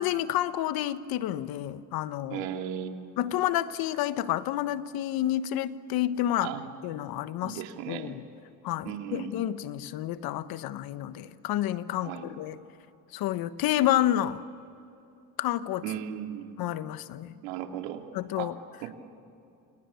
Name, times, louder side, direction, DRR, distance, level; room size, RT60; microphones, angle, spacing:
voice 1, 0.0-2.5 3.2-6.5 6.8-8.2 8.6-12.6 13.1-14.4 15.4-15.8 16.6-17.4 18.1-18.5, left 13 dB, 65° left, 13 dB, 1.3 m, -29 dB
voice 2, 2.3-2.9 6.4-6.7 7.4-8.1 8.8-9.3 12.0-12.3 15.8-16.5 17.4-18.0 18.3-18.5 18.8-19.0, right 10 dB, 85° right, 4 dB, 2.7 m, -36 dB
29.5 x 28.5 x 7.0 m, 2.7 s
supercardioid pair, 100°, 40 cm